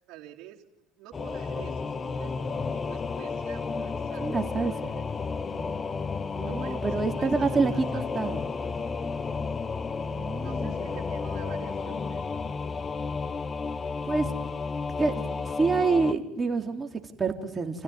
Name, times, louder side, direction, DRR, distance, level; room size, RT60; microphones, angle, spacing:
voice 1, 0.1-0.7 1.0-5.0 6.4-8.0 10.4-12.5, right 13 dB, 60° right, -2 dB, 3.9 m, -48 dB
Singing / Musical instrument, 1.1-16.1, left 4 dB, 30° left, 1.4 m, -32 dB
voice 2, 4.2-4.9 5.5-5.7 6.3-8.5 10.0-10.9 14.0-14.3 15.0-15.1 15.4-17.8, right 4 dB, 25° right, 4 dB, 3.7 m, -28 dB
29.5 x 16.0 x 9.8 m, 0.86 s
hypercardioid pair, 75°, 0 cm